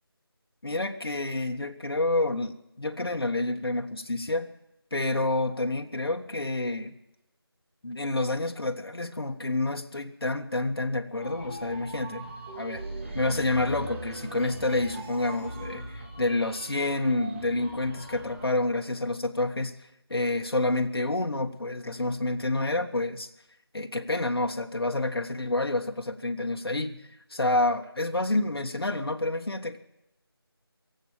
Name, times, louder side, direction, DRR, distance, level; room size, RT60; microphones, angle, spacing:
voice 1, 0.6-4.5 4.9-6.9 7.8-12.3 12.6-12.8 13.1-23.3 23.7-27.0 27.3-29.8, left 2 dB, 65° left, 4 dB, 1.6 m, -28 dB
sound 1, 11.2-18.5, right 2 dB, 30° right, 2.0 m, -40 dB
23.5 x 8.1 x 7.3 m, 0.88 s
figure-of-eight pair, 165°, 13 cm